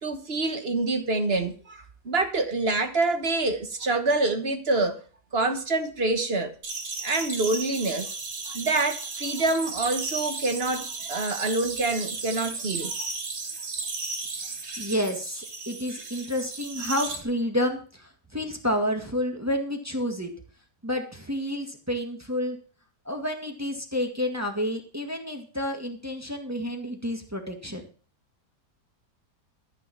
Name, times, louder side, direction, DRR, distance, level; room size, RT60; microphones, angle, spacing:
voice 1, 0.0-5.0 5.3-6.5 7.0-8.1 8.5-12.9, right 2 dB, 40° right, 1.5 m, -26 dB
sound 1, 6.6-17.2, right 4 dB, 85° right, 2.8 m, -35 dB
voice 2, 14.4-20.3 20.8-22.6 23.1-27.8, left 1 dB, 10° right, 1.8 m, -30 dB
13.5 x 6.6 x 7.2 m
omnidirectional pair, 1.8 m